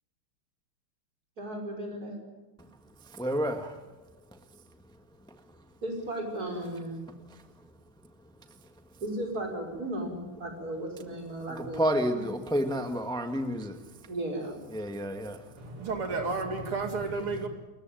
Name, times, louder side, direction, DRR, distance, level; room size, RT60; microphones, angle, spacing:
voice 1, 1.4-2.2 5.8-7.0 9.0-12.0 14.1-14.6, right 1 dB, 40° right, 5.8 m, -35 dB
voice 2, 3.1-3.8 7.3-7.4 11.5-13.8 14.7-15.4, equal, ahead, 1.3 m, -30 dB
voice 3, 15.6-17.5, right 3 dB, 80° right, 3.3 m, -32 dB
28.5 x 15.0 x 9.2 m
omnidirectional pair, 2.4 m